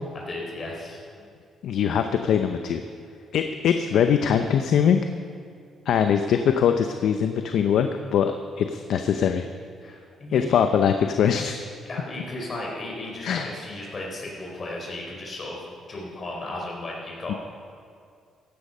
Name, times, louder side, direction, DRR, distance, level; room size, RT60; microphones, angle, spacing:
voice 1, 0.3-1.3 9.8-10.6 11.9-15.6 15.9-17.4, left 2 dB, 40° left, -2 dB, 4.3 m, -35 dB
voice 2, 1.6-2.8 3.3-5.0 5.9-9.4 10.3-11.6 13.2-13.5 17.3-17.4, left 8 dB, 75° left, 7 dB, 0.7 m, -22 dB
15.5 x 10.5 x 5.4 m, 2.4 s
cardioid pair, 90°, 0 cm